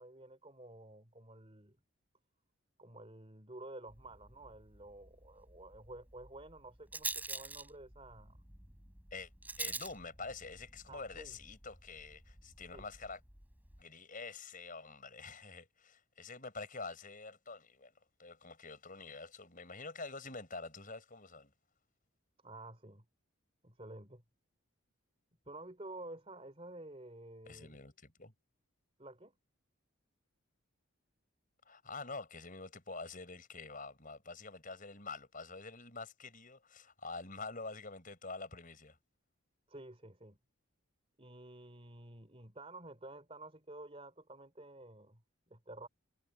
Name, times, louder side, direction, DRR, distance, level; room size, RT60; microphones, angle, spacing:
voice 1, 0.0-1.8 2.8-8.4 10.9-11.4 12.7-12.9 22.4-23.0 23.6-24.2 25.4-27.8 29.0-29.3 39.7-40.4 41.2-45.2 45.5-45.9, right 2 dB, 25° right, 3.4 m, -51 dB
Rattle, 3.9-13.8, right 3 dB, 10° right, 3.7 m, -47 dB
voice 2, 9.6-13.2 13.8-17.9 18.2-21.5 27.5-28.3 31.6-39.0, left 3 dB, 40° left, 6.3 m, -47 dB
head